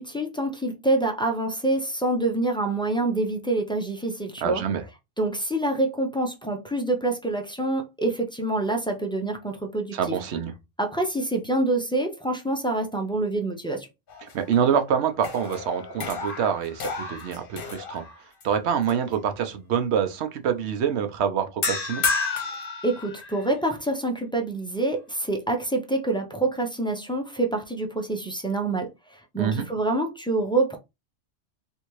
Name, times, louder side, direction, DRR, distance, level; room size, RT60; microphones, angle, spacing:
voice 1, 0.0-4.6 5.2-10.0 10.8-13.9 22.8-30.8, right 2 dB, 5° left, 0.4 m, -26 dB
voice 2, 4.4-4.8 9.9-10.5 14.3-18.0 18.4-22.0 29.4-29.6, right 8 dB, 70° right, 0.9 m, -26 dB
sound 1, 14.1-14.8 15.1-18.4 18.9-19.1 21.6-23.6, left 4 dB, 50° left, 0.9 m, -31 dB
3.4 x 2.7 x 3.0 m
omnidirectional pair, 1.3 m